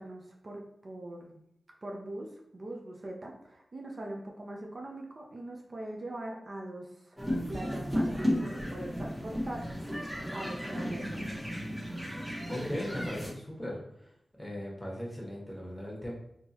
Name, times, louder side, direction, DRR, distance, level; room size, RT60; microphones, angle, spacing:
voice 1, 0.0-1.4 1.8-7.2 7.5-11.4, right 1 dB, 55° right, 0 dB, 0.6 m, -42 dB
sound 1, 7.2-13.3, equal, 15° right, 1.1 m, -34 dB
voice 2, 12.5-14.1 14.4-16.1, left 1 dB, 5° left, -3 dB, 1.3 m, -38 dB
3.7 x 2.8 x 2.8 m, 0.77 s
wide cardioid pair, 80°, 0 cm